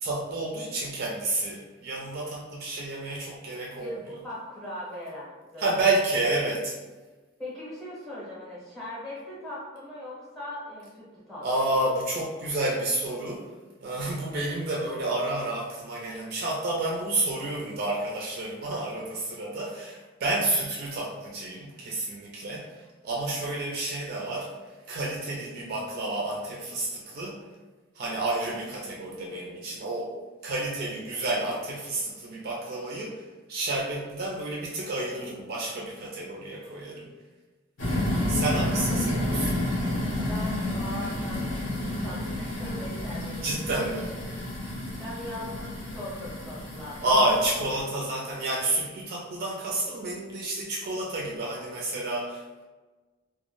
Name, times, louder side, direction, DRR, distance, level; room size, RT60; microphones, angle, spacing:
voice 1, 0.0-3.9 5.6-6.8 11.4-13.4 13.8-24.5 24.9-27.4 27.9-30.1 30.4-37.1 38.3-39.6 43.4-44.1 47.0-52.6, right 2 dB, 45° right, -2 dB, 0.3 m, -30 dB
voice 2, 3.8-5.9 7.4-11.8 38.8-38.9 40.3-43.8 45.0-47.3, left 1 dB, ahead, -8 dB, 0.7 m, -40 dB
sound 1, 37.8-47.8, left 1 dB, 65° left, 0.7 m, -30 dB
2.2 x 2.0 x 2.9 m, 1.2 s
head